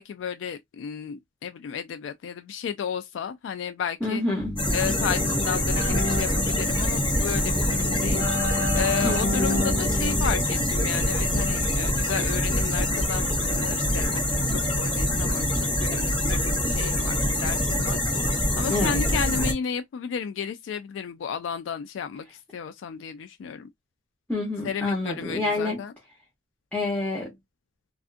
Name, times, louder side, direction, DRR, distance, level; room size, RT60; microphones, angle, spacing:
voice 1, 0.0-4.2 4.7-23.7 24.6-25.9, left 7 dB, 70° left, 0.3 m, -33 dB
voice 2, 4.0-4.6 9.0-9.5 11.6-11.7 18.7-19.0 24.3-25.8 26.7-27.3, left 2 dB, 10° left, 1.0 m, -28 dB
Keyboard (musical), 4.4-11.7, left 2 dB, 50° left, 2.1 m, -31 dB
sound 1, 4.6-19.5, left 1 dB, 25° left, 1.5 m, -25 dB
3.5 x 2.4 x 2.4 m
head